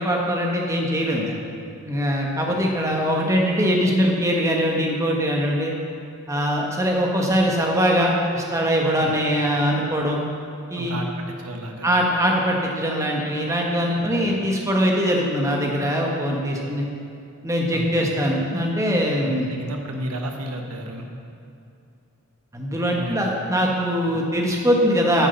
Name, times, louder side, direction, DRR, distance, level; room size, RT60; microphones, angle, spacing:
voice 1, 0.0-1.4 1.8-5.7 6.3-10.2 10.7-11.0 11.8-16.9 17.4-19.5 22.5-25.3, equal, 15° right, -1 dB, 1.3 m, -22 dB
voice 2, 10.8-11.9 14.0-14.2 17.7-18.1 19.2-21.1 22.9-23.4 24.1-24.2, right 1 dB, 80° right, 3 dB, 1.3 m, -33 dB
9.4 x 7.3 x 7.0 m, 2.6 s
head